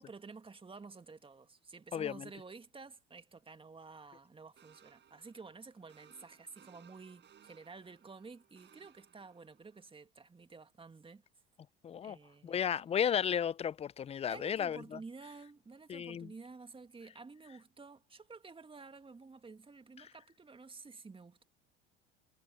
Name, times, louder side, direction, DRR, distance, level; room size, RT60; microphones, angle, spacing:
voice 1, 0.0-11.3 12.0-12.6 14.3-21.4, right 4 dB, 20° right, 2.4 m, -52 dB
voice 2, 1.9-2.3 11.8-12.2 12.4-15.0 15.9-16.3, left 8 dB, 20° left, 0.4 m, -34 dB
sound 1, 4.6-9.9, right 9 dB, 35° right, 4.9 m, -64 dB
hypercardioid pair, 80°, 30 cm